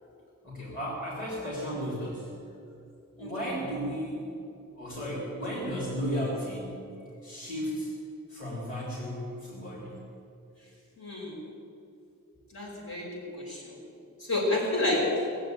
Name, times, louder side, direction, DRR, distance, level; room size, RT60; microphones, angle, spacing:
voice 1, 0.4-2.3 3.2-4.3 4.7-6.8 7.2-7.9 8.3-10.0, equal, 40° left, -5 dB, 3.4 m, -34 dB
voice 2, 3.2-3.5 11.0-11.3 12.5-13.8 14.2-15.2, left 2 dB, 75° left, -3 dB, 5.0 m, -30 dB
19.5 x 7.9 x 9.2 m, 2.6 s
head